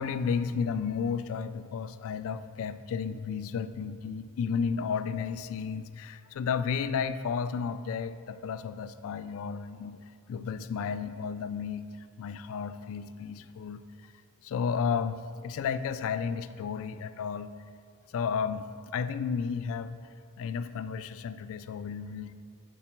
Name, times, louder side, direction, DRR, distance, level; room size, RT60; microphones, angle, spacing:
voice 1, 0.0-10.0 10.3-13.8 14.4-17.5 18.1-20.0 20.4-22.3, left 6 dB, 65° left, 12 dB, 0.3 m, -33 dB
5.4 x 4.3 x 5.9 m, 2.4 s
head